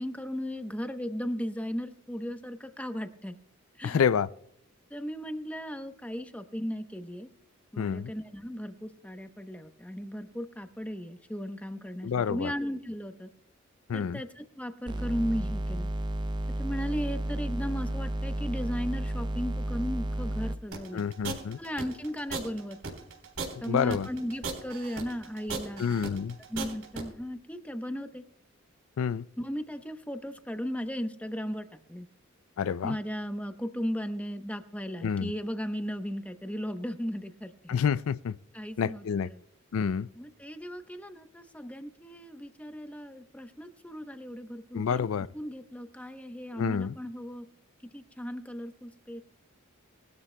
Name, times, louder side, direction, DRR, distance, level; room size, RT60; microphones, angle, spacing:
voice 1, 0.0-3.4 3.8-4.0 4.9-7.3 7.7-13.3 13.9-15.9 16.6-21.0 21.6-22.8 23.6-25.8 26.5-28.2 29.4-32.1 32.8-37.8 38.5-39.4 40.1-45.1 45.3-47.5 47.9-49.2, equal, 5° left, 0.8 m, -36 dB
voice 2, 3.8-4.3 7.8-8.1 12.0-12.5 13.9-14.2 20.9-21.6 23.7-24.1 25.8-26.4 29.0-29.3 32.6-33.0 35.0-35.3 37.7-38.4 38.8-39.3 39.7-40.1 44.7-45.3 46.6-46.9, left 7 dB, 70° left, 0.4 m, -28 dB
sound 1, 14.9-20.6, right 1 dB, 20° right, 0.4 m, -32 dB
sound 2, 20.7-27.0, right 4 dB, 85° right, 3.8 m, -36 dB
21.0 x 13.0 x 2.2 m
head